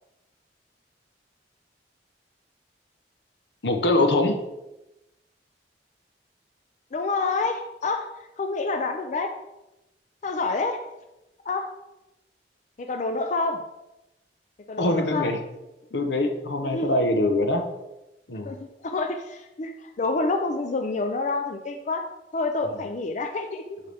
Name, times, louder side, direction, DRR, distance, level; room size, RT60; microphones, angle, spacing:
voice 1, 3.6-4.4 14.8-15.4 15.9-17.6 18.3-18.5 22.7-22.8, left 1 dB, 75° left, 5 dB, 0.8 m, -23 dB
voice 2, 6.9-8.1 8.4-9.3 10.2-10.8 11.5-11.7 12.8-13.6 14.7-15.3 16.6-17.0 18.4-22.0 22.3-23.8, left 3 dB, 45° left, 5 dB, 0.4 m, -28 dB
6.6 x 5.7 x 3.4 m, 0.96 s
head